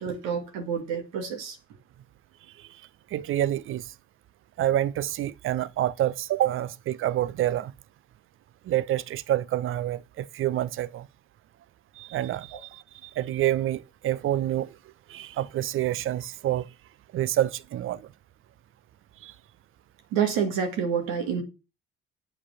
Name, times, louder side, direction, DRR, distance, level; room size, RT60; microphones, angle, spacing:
voice 1, 0.0-1.6 12.5-12.6 20.1-21.4, right 7 dB, 65° right, 1.7 m, -28 dB
voice 2, 3.1-3.9 4.6-7.7 8.6-11.1 12.0-14.7 15.1-16.7 17.1-18.1 19.2-19.3, right 12 dB, 45° right, 0.6 m, -27 dB
7.9 x 4.8 x 5.7 m
figure-of-eight pair, 45°, 30 cm